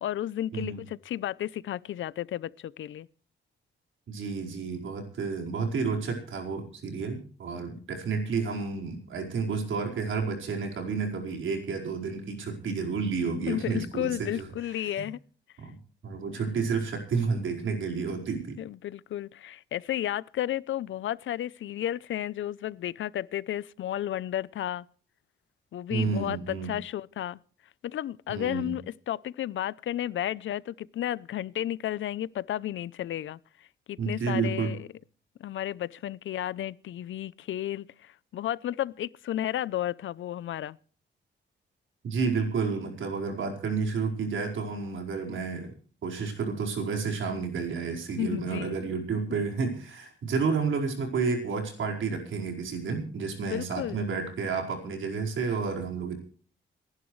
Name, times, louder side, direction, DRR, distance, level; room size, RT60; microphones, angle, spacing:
voice 1, 0.0-3.1 7.5-7.7 13.5-15.2 18.6-24.9 25.7-27.4 27.8-33.4 33.9-34.9 35.4-40.8 48.2-48.7 53.5-54.0, left 12 dB, 85° left, 0.6 m, -33 dB
voice 2, 4.1-14.5 14.8-15.0 15.6-15.8 16.0-18.6 25.9-26.7 28.3-28.7 34.0-34.7 42.0-45.7 46.0-56.1, right 5 dB, 85° right, 4.7 m, -31 dB
28.0 x 11.5 x 3.2 m
wide cardioid pair, 140°, 20 cm